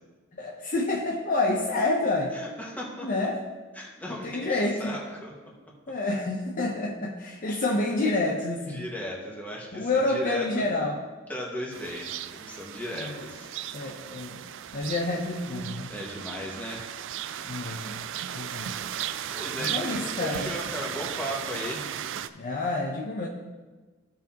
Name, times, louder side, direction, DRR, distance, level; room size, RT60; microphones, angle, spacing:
voice 1, 0.3-2.3 3.0-3.4 4.1-5.0 5.9-8.8 9.7-11.0 12.9-13.2 13.7-14.4 14.7-15.9 17.4-18.7 19.6-20.5 22.4-23.3, left 2 dB, 45° left, 0 dB, 0.7 m, -28 dB
voice 2, 2.3-3.1 3.7-5.5 8.7-10.6 11.3-13.5 15.9-16.9 19.3-22.0, equal, 10° left, -3 dB, 1.7 m, -36 dB
sound 1, 11.7-22.3, right 10 dB, 65° right, 0.4 m, -36 dB
15.0 x 5.7 x 2.9 m, 1.3 s
head